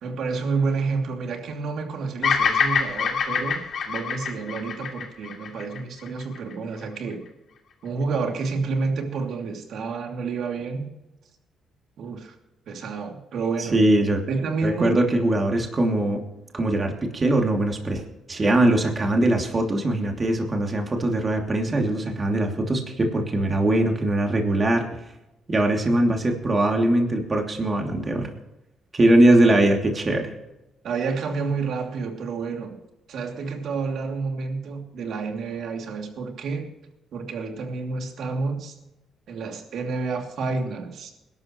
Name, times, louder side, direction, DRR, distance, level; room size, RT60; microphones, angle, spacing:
voice 1, 0.0-7.2 7.8-10.9 12.0-12.3 12.7-13.8 14.3-15.0 29.3-29.4 30.8-32.8 33.1-36.7 37.1-38.7 39.3-41.1, right 4 dB, 70° right, 3 dB, 2.8 m, -29 dB
Bird vocalization bird call bird song, 2.2-6.5, left 6 dB, 60° left, 2.6 m, -25 dB
voice 2, 13.6-14.2 14.6-16.2 16.5-18.0 18.3-24.8 25.5-28.3 28.9-30.3, right 1 dB, 30° right, 2 dB, 2.9 m, -21 dB
21.0 x 12.0 x 3.2 m, 0.96 s
cardioid pair, 90°, 0 cm